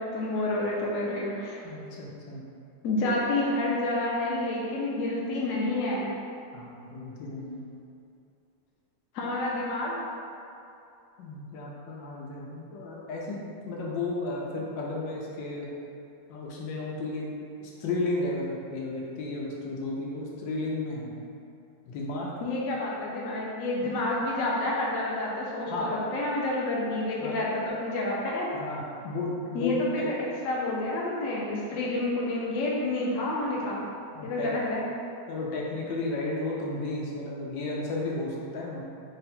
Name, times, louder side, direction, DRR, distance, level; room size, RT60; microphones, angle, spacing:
voice 1, 0.0-1.6 2.8-6.1 9.1-10.1 22.4-28.6 29.5-30.2 30.4-33.9 34.2-34.8, left 2 dB, 60° left, -4 dB, 0.8 m, -29 dB
voice 2, 1.6-2.4 6.5-7.6 11.2-13.4 13.7-15.7 16.3-17.3 17.6-21.1 21.9-22.3 23.8-23.9 25.7-26.0 27.2-27.4 28.5-30.1 34.1-34.5 35.3-38.8, left 2 dB, 85° left, -3 dB, 1.4 m, -33 dB
3.7 x 2.2 x 4.1 m, 2.6 s
omnidirectional pair, 2.0 m